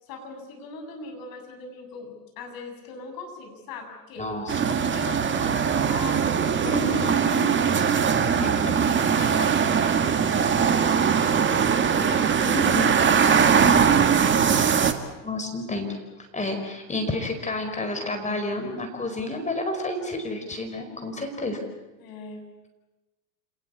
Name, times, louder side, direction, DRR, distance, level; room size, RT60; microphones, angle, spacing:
voice 1, 0.0-4.3 4.9-7.9 9.1-12.3 13.2-14.8 22.0-22.5, left 4 dB, 45° left, 4 dB, 7.7 m, -41 dB
voice 2, 4.2-4.8 6.6-7.5 8.2-8.8 12.5-13.0 15.2-16.0 16.3-21.6, left 2 dB, 15° left, 5 dB, 5.1 m, -30 dB
sound 1, 4.5-14.9, right 7 dB, 25° right, 2.0 m, -21 dB
28.5 x 19.5 x 8.6 m, 1.1 s
hypercardioid pair, 95°, 49 cm